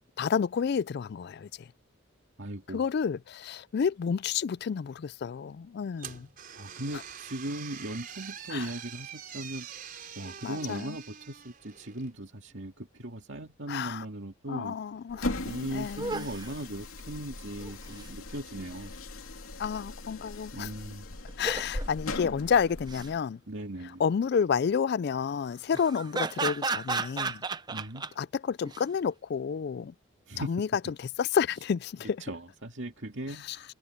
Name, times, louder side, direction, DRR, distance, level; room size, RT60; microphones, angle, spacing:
voice 1, 0.2-1.7 2.7-6.3 8.5-8.7 10.4-11.0 13.7-14.0 14.5-15.3 15.7-16.3 19.6-20.7 21.4-23.4 24.0-27.4 28.2-29.9 30.4-30.7 31.0-32.2 33.5-33.6, left 6 dB, 50° left, 0.3 m, -30 dB
voice 2, 2.4-2.8 6.5-9.7 10.2-14.8 15.4-18.9 20.5-21.1 23.5-24.0 27.7-28.1 30.3-30.5 32.2-33.7, right 1 dB, 60° right, 2.4 m, -38 dB
sound 1, 6.0-12.1, right 8 dB, 40° right, 4.8 m, -45 dB
sound 2, 15.1-23.2, left 2 dB, 90° left, 2.7 m, -39 dB
sound 3, 15.2-15.3 15.5-15.6 16.0-16.5 17.6-18.1 21.3-21.9 22.7-23.1 25.7-28.1 28.7-28.8, right 4 dB, 20° right, 0.6 m, -33 dB
head